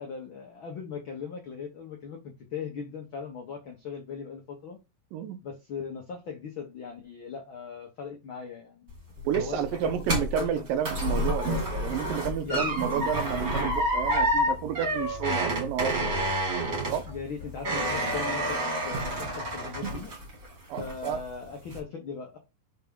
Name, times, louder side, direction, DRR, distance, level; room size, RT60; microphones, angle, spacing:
voice 1, 0.0-4.8 5.4-8.9 9.3-10.0 10.4-10.7 11.0-11.1 12.4-13.1 17.0-20.1 20.8-22.4, left 6 dB, 85° left, 1.1 m, -39 dB
sound 1, 8.9-20.5 20.8-21.3 21.7-21.8, equal, 25° right, 2.3 m, -29 dB
voice 2, 9.2-16.1 16.9-17.1 20.7-21.2, right 9 dB, 85° right, 2.4 m, -31 dB
5.8 x 4.7 x 3.7 m
omnidirectional pair, 3.9 m